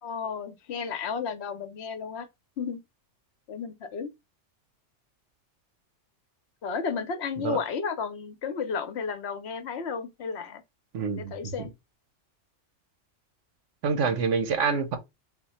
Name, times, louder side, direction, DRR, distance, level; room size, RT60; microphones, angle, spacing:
voice 1, 0.0-2.3 2.6-2.8 3.5-4.1 6.6-10.6 11.2-11.7 14.6-14.8, left 6 dB, 65° left, 0.9 m, -33 dB
voice 2, 10.9-11.3 13.8-15.0, right 5 dB, 80° right, 1.2 m, -26 dB
4.2 x 2.2 x 4.1 m
omnidirectional pair, 1.2 m